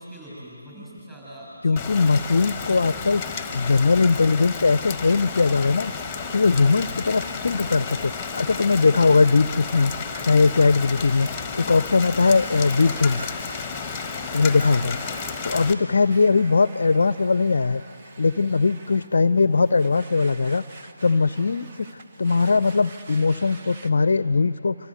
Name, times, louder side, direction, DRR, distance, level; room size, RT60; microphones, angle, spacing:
voice 1, 0.0-2.6 14.7-15.5 15.9-16.4, equal, 10° right, -6 dB, 7.8 m, -44 dB
voice 2, 1.6-5.9 6.3-9.9 10.2-11.3 11.5-13.3 14.3-15.0 15.4-17.8 18.2-20.6 21.0-24.8, left 4 dB, 50° left, 15 dB, 0.5 m, -20 dB
Rain, 1.8-15.7, left 5 dB, 10° left, 1.4 m, -32 dB
sound 1, 4.9-13.3, right 1 dB, 70° right, 1.5 m, -47 dB
Domestic sounds home sounds, 12.0-23.9, right 3 dB, 25° right, 1.3 m, -46 dB
27.0 x 25.5 x 8.0 m, 2.7 s
figure-of-eight pair, 150°, 0 cm